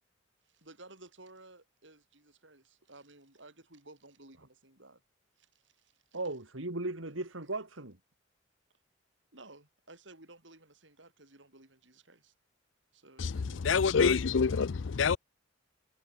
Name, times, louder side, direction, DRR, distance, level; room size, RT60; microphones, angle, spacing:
voice 1, 0.5-5.0 5.4-6.2 9.3-12.3 12.9-13.8, right 2 dB, 65° right, 6.5 m, -56 dB
voice 2, 6.1-8.0, right 2 dB, 90° right, 3.1 m, -37 dB
voice 3, 13.6-15.2, left 5 dB, 70° left, 0.5 m, -26 dB
head